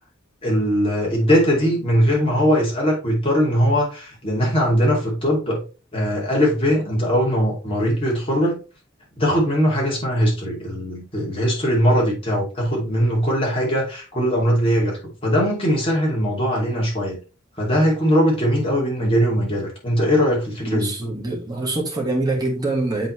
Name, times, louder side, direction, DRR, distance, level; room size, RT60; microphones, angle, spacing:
voice 1, 0.4-5.6 5.9-8.6 9.2-17.2 17.6-20.9, equal, 25° left, 2.7 m, -20 dB
voice 2, 20.6-23.1, right 2 dB, 20° right, 1.9 m, -24 dB
7.9 x 4.0 x 3.2 m
head